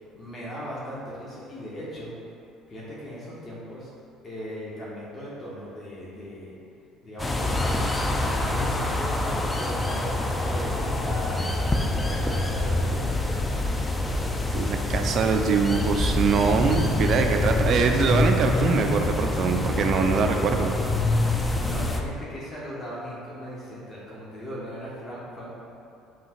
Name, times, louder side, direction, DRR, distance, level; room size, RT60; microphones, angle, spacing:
voice 1, 0.1-2.1 2.7-3.9 4.2-6.5 7.0-13.2 21.6-25.5, equal, 35° left, -7 dB, 1.1 m, -38 dB
sound 1, 7.2-22.0, left 2 dB, 20° left, 0.4 m, -26 dB
voice 2, 14.5-20.7, right 5 dB, 50° right, 4 dB, 0.4 m, -23 dB
7.2 x 2.4 x 2.9 m, 2.7 s
figure-of-eight pair, 55°, 0 cm